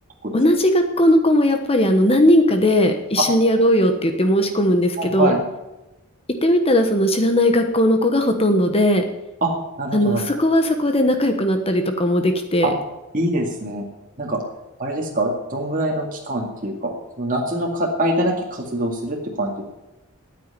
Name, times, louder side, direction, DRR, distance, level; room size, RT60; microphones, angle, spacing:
voice 1, 0.3-5.3 6.4-9.0 9.9-12.7, left 1 dB, 30° left, 6 dB, 1.1 m, -18 dB
voice 2, 5.0-5.4 9.4-9.5 9.8-10.3 12.6-12.7 13.1-13.8 14.2-14.4 14.8-16.9 17.2-19.6, right 1 dB, 40° right, -1 dB, 2.2 m, -24 dB
9.4 x 9.2 x 9.8 m, 1.0 s
head